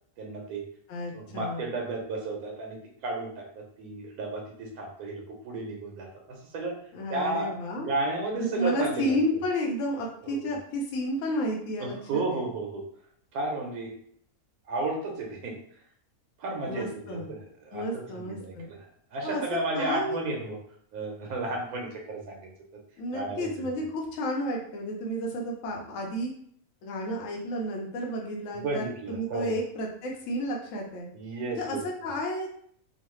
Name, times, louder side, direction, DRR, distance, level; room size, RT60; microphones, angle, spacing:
voice 1, 0.2-0.6 1.1-6.8 7.1-7.5 7.8-9.2 10.2-10.5 11.8-12.8 13.3-13.9 14.7-15.5 16.4-20.6 20.9-22.5 23.1-23.7 28.6-29.5 31.1-31.8, right 2 dB, 90° right, 0 dB, 1.2 m, -33 dB
voice 2, 0.9-1.7 6.9-7.9 8.3-12.5 16.7-17.3 17.7-18.7 19.2-20.2 23.0-26.3 26.8-31.1 31.5-32.5, equal, 65° left, -1 dB, 1.0 m, -31 dB
3.1 x 2.1 x 3.0 m, 0.63 s
omnidirectional pair, 1.5 m